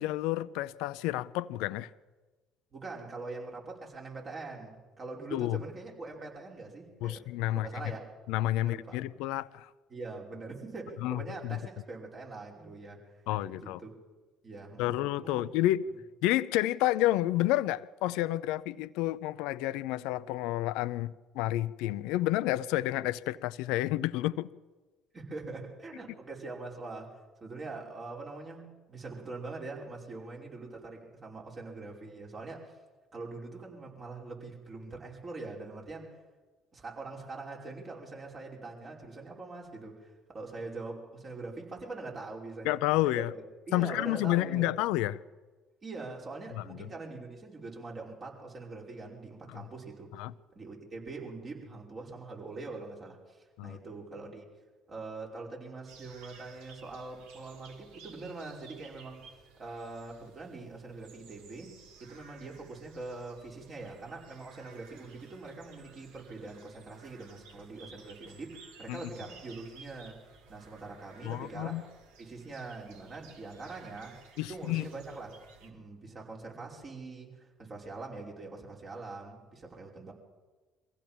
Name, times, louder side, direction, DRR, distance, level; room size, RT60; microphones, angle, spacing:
voice 1, 0.0-1.9 5.3-5.6 7.0-7.7 8.3-9.7 11.0-11.6 13.3-13.8 14.8-15.8 16.2-24.5 42.6-43.3 43.7-45.2 46.6-46.7 49.5-49.6 50.2-50.3 53.6-53.8 68.9-69.0 71.2-71.8 74.4-74.9, left 15 dB, 70° left, 0.6 m, -30 dB
voice 2, 2.7-8.1 8.6-9.0 9.9-13.2 13.5-13.9 14.4-15.4 25.1-32.8 33.1-36.2 36.7-44.7 45.8-50.1 50.5-54.4 54.9-71.9 72.2-74.2 74.5-75.3 75.6-80.1, right 3 dB, 40° right, 5.4 m, -43 dB
sound 1, 55.9-75.7, right 5 dB, 70° right, 2.4 m, -56 dB
23.0 x 15.5 x 7.5 m
hypercardioid pair, 55°, 0 cm